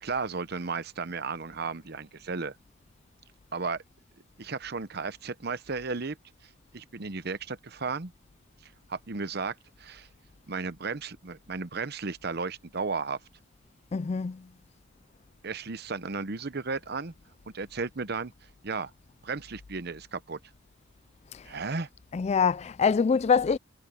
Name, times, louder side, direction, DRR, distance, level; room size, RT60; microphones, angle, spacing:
voice 1, 0.0-2.6 3.5-3.8 4.4-6.2 6.4-8.1 8.6-10.1 10.5-13.2 15.4-17.1 17.5-18.3 18.6-18.9 19.2-20.4 21.4-21.9, right 4 dB, 55° right, 0.9 m, -34 dB
voice 2, 13.9-14.5 21.3-21.5 22.1-23.6, left 6 dB, 35° left, 0.3 m, -25 dB
head